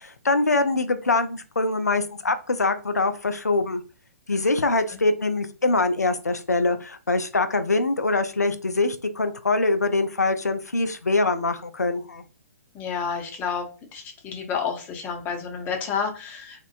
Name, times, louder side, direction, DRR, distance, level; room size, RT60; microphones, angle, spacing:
voice 1, 0.0-3.8 4.3-12.2, left 3 dB, 85° left, 9 dB, 0.4 m, -23 dB
voice 2, 12.7-16.7, left 6 dB, 20° left, 2 dB, 0.6 m, -30 dB
2.9 x 2.0 x 2.4 m, 0.34 s
figure-of-eight pair, 120°, 9 cm